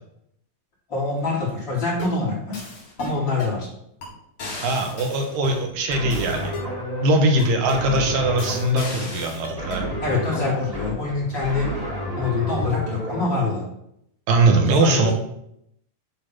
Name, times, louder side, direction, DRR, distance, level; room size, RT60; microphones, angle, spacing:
voice 1, 0.9-2.6 3.0-3.7 10.0-11.7 12.1-13.6 14.6-15.1, left 3 dB, 35° left, -6 dB, 3.3 m, -25 dB
sound 1, 1.8-2.2 2.5-3.6 4.0-4.1 4.4-6.7 7.4-7.9 8.4-9.9, left 2 dB, 50° left, 2.7 m, -35 dB
voice 2, 4.6-6.6 7.0-9.9 14.3-15.1, right 2 dB, 85° right, 3 dB, 2.9 m, -21 dB
sound 2, 5.9-13.2, equal, 15° right, 1.8 m, -31 dB
9.7 x 3.8 x 5.8 m, 0.74 s
omnidirectional pair, 3.9 m